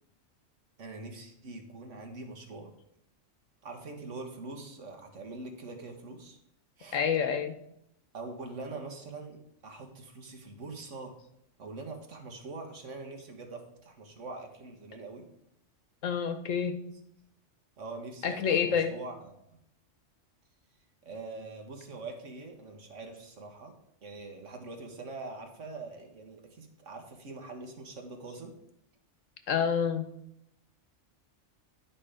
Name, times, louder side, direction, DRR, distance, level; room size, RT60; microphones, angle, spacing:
voice 1, 0.8-2.7 3.6-6.4 6.8-7.0 8.1-11.2 11.6-15.3 17.8-19.6 21.0-23.7 24.0-28.5, right 3 dB, 70° right, 4 dB, 1.7 m, -43 dB
voice 2, 6.9-7.6 16.0-16.8 18.2-19.0 29.5-30.1, left 7 dB, 85° left, 9 dB, 1.3 m, -28 dB
10.5 x 5.1 x 5.0 m, 0.76 s
omnidirectional pair, 1.3 m